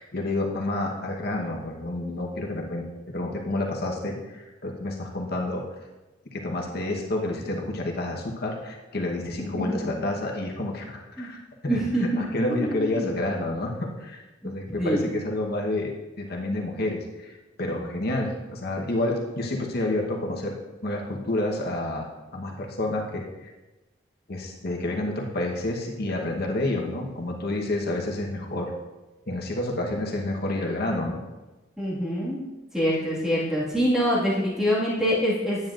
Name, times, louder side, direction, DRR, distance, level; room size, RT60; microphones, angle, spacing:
voice 1, 0.0-5.6 6.3-20.5 20.8-22.1 22.3-23.5 24.3-28.7 29.3-31.2, left 1 dB, 55° left, 0 dB, 1.1 m, -29 dB
voice 2, 9.5-9.9 11.2-11.3 11.7-12.2 12.5-13.1 14.4-15.0 31.8-32.4 32.7-35.6, equal, 5° right, -7 dB, 1.8 m, -25 dB
9.5 x 9.2 x 2.5 m, 1.1 s
head